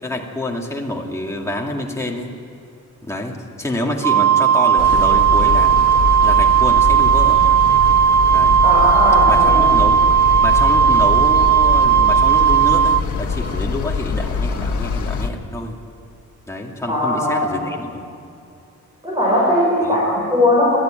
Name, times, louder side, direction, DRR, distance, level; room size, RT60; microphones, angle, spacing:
voice 1, 0.0-2.3 3.0-5.7 6.2-7.4 8.3-8.6 9.3-10.0 10.4-15.8 16.5-18.1 19.8-20.0, left 1 dB, 10° left, -1 dB, 2.3 m, -27 dB
Wind instrument woodwind instrument, 4.0-13.0, right 8 dB, 75° right, 0.9 m, -15 dB
sound 1, 4.8-15.3, left 5 dB, 75° left, 1.4 m, -23 dB
voice 2, 8.6-9.7 16.9-17.5 19.0-20.8, left 1 dB, 15° right, -5 dB, 5.3 m, -18 dB
29.5 x 13.0 x 9.0 m, 2.5 s
wide cardioid pair, 180°, 30 cm